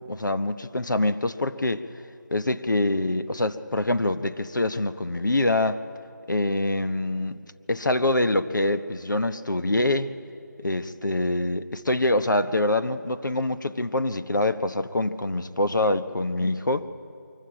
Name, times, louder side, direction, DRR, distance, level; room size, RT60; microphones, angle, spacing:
voice 1, 0.1-1.8 2.3-5.8 6.3-7.4 7.7-10.1 10.6-16.9, left 2 dB, 75° left, 12 dB, 1.0 m, -25 dB
23.0 x 14.5 x 8.7 m, 2.4 s
figure-of-eight pair, 175°, 10 cm